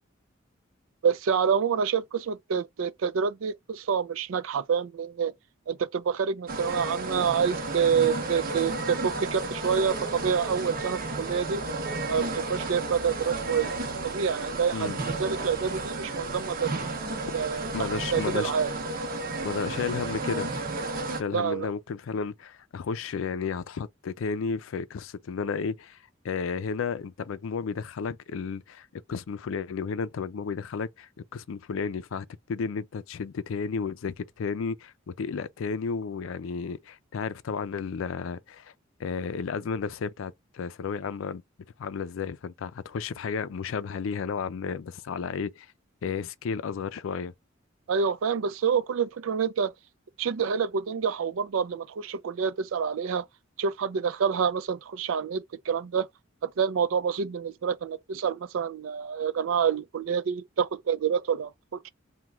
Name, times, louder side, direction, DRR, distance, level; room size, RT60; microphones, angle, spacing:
voice 1, 1.0-5.3 5.7-11.6 12.1-13.7 14.0-16.8 17.3-17.7 18.1-18.7 21.3-21.7 47.9-49.7 50.2-53.2 53.6-56.1 56.6-61.9, right 6 dB, 85° right, 0.4 m, -27 dB
sound 1, 6.5-21.2, right 2 dB, 45° right, 0.8 m, -32 dB
voice 2, 17.7-18.5 19.4-20.5 21.2-26.0 26.2-38.7 39.0-41.4 41.8-45.7 46.0-47.3, left 5 dB, 80° left, 0.4 m, -32 dB
3.0 x 2.2 x 3.4 m
head